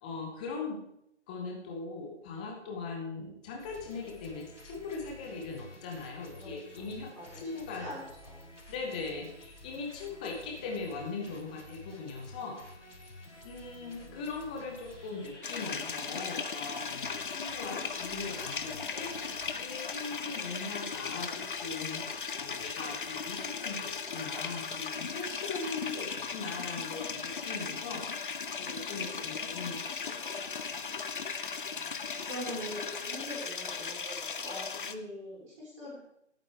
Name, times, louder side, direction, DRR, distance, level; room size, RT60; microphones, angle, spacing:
voice 1, 0.0-0.8 1.3-7.1 7.3-7.8 8.7-12.6 13.4-19.1 19.6-22.0 22.4-28.0 28.6-30.8, left 4 dB, 5° left, 1 dB, 0.7 m, -40 dB
sound 1, 3.6-19.6, left 1 dB, 85° left, 3.2 m, -51 dB
voice 2, 6.4-6.9 7.2-7.4 7.8-8.5 13.8-14.2 31.6-31.9 32.3-36.0, equal, 25° right, -6 dB, 4.8 m, -43 dB
sound 2, 15.4-34.9, left 5 dB, 45° left, 0.8 m, -37 dB
19.0 x 9.0 x 3.4 m, 0.78 s
figure-of-eight pair, 145°, 35 cm